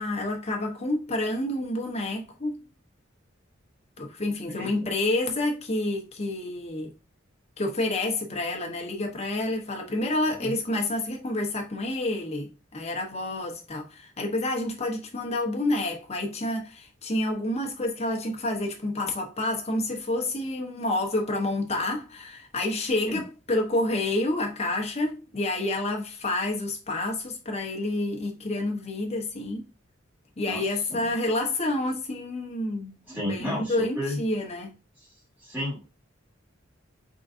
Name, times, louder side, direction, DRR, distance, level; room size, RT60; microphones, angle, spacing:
voice 1, 0.0-2.6 4.0-6.9 7.6-29.6 30.4-33.0 33.3-34.7, left 2 dB, 35° left, 1.0 m, -29 dB
voice 2, 4.6-4.9 10.4-10.5 23.1-23.2 30.4-30.6 30.9-31.1 33.1-34.2 35.4-35.8, left 1 dB, 10° right, 2.5 m, -32 dB
3.9 x 3.7 x 2.6 m
head